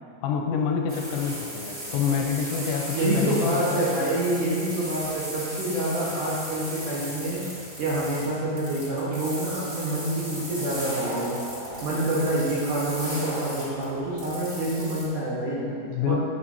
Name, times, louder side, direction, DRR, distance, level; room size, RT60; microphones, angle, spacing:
voice 1, 0.2-3.8 15.7-16.2, left 7 dB, 90° left, 2 dB, 3.1 m, -27 dB
sound 1, 0.9-15.1, equal, 35° right, 1.4 m, -37 dB
voice 2, 2.9-7.4 7.8-11.4 11.8-15.6 16.1-16.2, right 1 dB, 60° right, -8 dB, 2.4 m, -27 dB
sound 2, 8.6-14.0, left 1 dB, 45° left, 2.8 m, -40 dB
9.7 x 9.7 x 2.9 m, 2.6 s
omnidirectional pair, 5.2 m